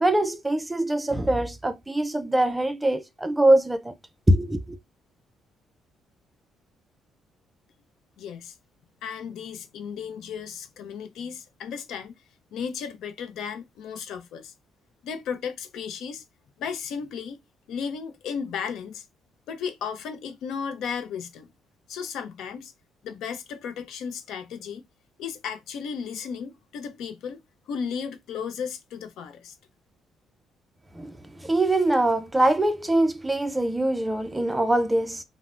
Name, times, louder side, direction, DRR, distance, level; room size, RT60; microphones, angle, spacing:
voice 1, 0.0-4.0 4.3-4.8 31.0-31.1 31.4-35.2, right 1 dB, 10° right, 0.3 m, -23 dB
voice 2, 8.2-8.5 9.0-12.2 12.5-14.5 15.0-16.2 16.6-17.4 17.7-19.0 19.5-21.5 21.9-22.7 23.0-24.8 25.2-27.4 27.7-29.5, left 6 dB, 75° left, 0.5 m, -34 dB
3.2 x 2.0 x 2.4 m
cardioid pair, 145°, 0 cm